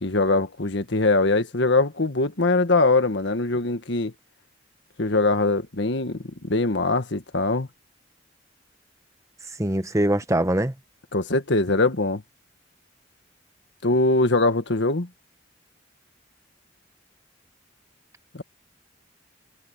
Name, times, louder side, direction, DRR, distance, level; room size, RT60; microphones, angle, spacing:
voice 1, 0.0-4.1 5.0-7.7 11.1-12.2 13.8-15.1 18.3-18.4, left 2 dB, 65° left, 1.7 m, -22 dB
voice 2, 9.6-10.7, right 1 dB, 15° right, 1.1 m, -22 dB
head